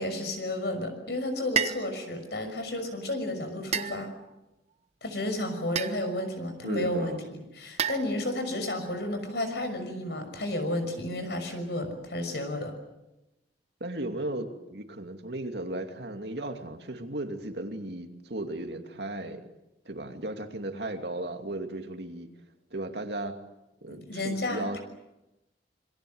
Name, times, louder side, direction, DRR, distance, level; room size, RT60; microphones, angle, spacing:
voice 1, 0.0-4.1 5.0-12.7 23.9-24.8, left 1 dB, 65° left, 7 dB, 6.1 m, -32 dB
sound 1, 1.6-1.9 3.7-4.4 5.8-6.2 7.8-8.5, right 7 dB, 40° right, 1.0 m, -31 dB
voice 2, 6.6-7.2 13.8-19.5 19.8-22.3 22.7-23.4 23.8-24.8, right 1 dB, 70° right, 5 dB, 2.5 m, -35 dB
27.5 x 22.5 x 7.9 m, 0.96 s
head